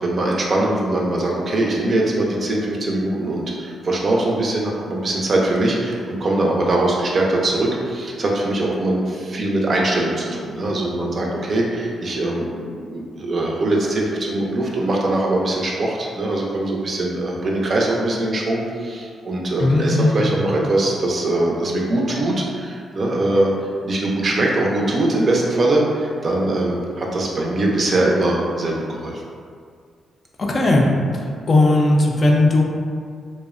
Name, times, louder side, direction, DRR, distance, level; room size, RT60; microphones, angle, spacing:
voice 1, 0.0-23.5 23.8-29.2, right 2 dB, 50° right, -2 dB, 0.4 m, -21 dB
voice 2, 19.6-20.3 30.4-30.9 31.5-32.6, left 2 dB, 45° left, -1 dB, 0.4 m, -16 dB
2.6 x 2.0 x 2.4 m, 2.1 s
cardioid pair, 70°, 0 cm